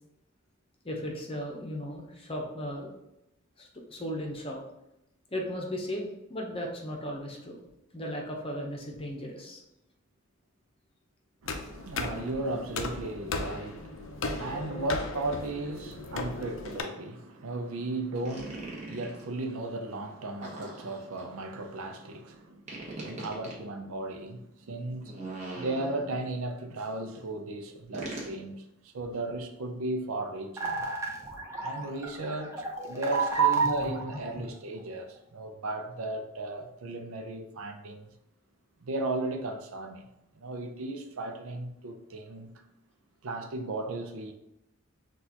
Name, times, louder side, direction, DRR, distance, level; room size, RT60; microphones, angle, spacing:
voice 1, 0.8-2.9 3.6-4.6 5.3-7.6 7.9-9.6 32.8-33.8, equal, 25° left, 0.7 m, -35 dB
voice 2, 11.4-25.2 25.5-28.6 28.8-30.9 31.6-38.1 38.8-40.1 40.3-42.6 43.2-44.3, right 3 dB, 75° right, 0.5 m, -35 dB
sound 1, 11.5-16.8, left 3 dB, 60° left, 0.5 m, -36 dB
sound 2, 18.3-19.2 20.4-21.2 22.7-23.6 25.0-26.3 27.9-28.4, right 2 dB, 35° right, 0.9 m, -40 dB
sound 3, 30.6-34.8, right 2 dB, 15° right, 0.6 m, -37 dB
6.2 x 2.4 x 2.8 m
head